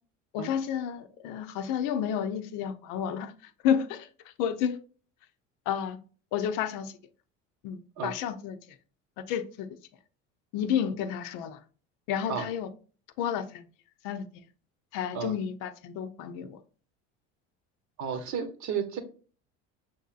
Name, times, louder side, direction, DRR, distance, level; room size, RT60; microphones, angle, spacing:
voice 1, 0.3-4.8 5.7-6.0 6.3-7.0 7.6-8.8 9.2-9.8 10.5-11.6 12.1-12.7 13.2-13.7 14.0-14.3 14.9-16.6, left 8 dB, 65° left, 0.6 m, -31 dB
voice 2, 18.0-19.0, right 7 dB, 55° right, 0.9 m, -32 dB
5.9 x 2.7 x 2.4 m
hypercardioid pair, 80°, 35 cm